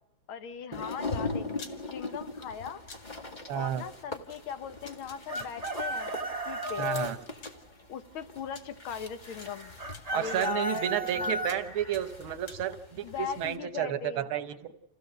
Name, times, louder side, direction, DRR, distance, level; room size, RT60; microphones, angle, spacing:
voice 1, 0.3-1.5 1.9-2.8 3.5-6.1 6.5-6.9 7.9-9.7 10.1-11.3 13.0-14.3, left 7 dB, 80° left, 9 dB, 1.9 m, -39 dB
sound 1, 0.7-13.6, left 3 dB, 25° left, 1.4 m, -41 dB
sound 2, 1.6-1.7 2.9-3.0 4.3-4.4 4.9-5.7 6.8-6.9 7.4-7.6 8.5-8.6 9.4-9.5 9.9-11.1 11.5-11.7 11.9-12.6, left 5 dB, 60° left, 2.3 m, -47 dB
voice 2, 3.5-3.8 6.8-7.2 10.1-14.6, right 10 dB, 90° right, 10 dB, 1.8 m, -31 dB
Chicken rooster, 5.3-7.1 9.8-11.6, equal, 25° right, 1.0 m, -34 dB
28.5 x 16.5 x 6.8 m, 0.90 s
omnidirectional pair, 2.2 m